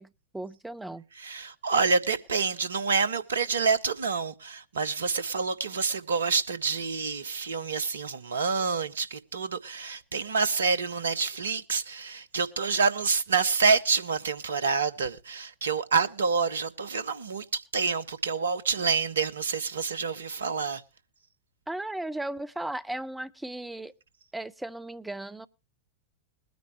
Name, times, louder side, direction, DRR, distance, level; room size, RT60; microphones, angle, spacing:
voice 1, 0.0-1.0 21.7-23.9 24.3-25.5, right 1 dB, 5° right, 0.6 m, -36 dB
voice 2, 1.2-20.8, right 5 dB, 70° right, 0.8 m, -27 dB
21.5 x 9.4 x 3.1 m
figure-of-eight pair, 90°, 0 cm